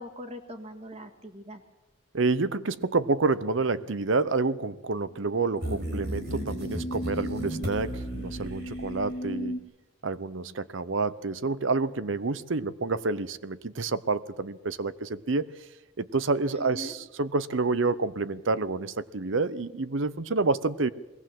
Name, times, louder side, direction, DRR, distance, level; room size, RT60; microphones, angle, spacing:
voice 1, 0.0-1.6 16.5-16.9, left 1 dB, 30° right, 6 dB, 1.9 m, -41 dB
voice 2, 2.1-9.6 10.0-15.5 16.0-20.9, right 3 dB, 70° right, 17 dB, 0.7 m, -28 dB
sound 1, 5.2-9.6, equal, 40° left, 1.5 m, -37 dB
sound 2, 5.6-9.3, equal, 50° right, 4.9 m, -35 dB
21.0 x 17.5 x 7.6 m, 1.1 s
head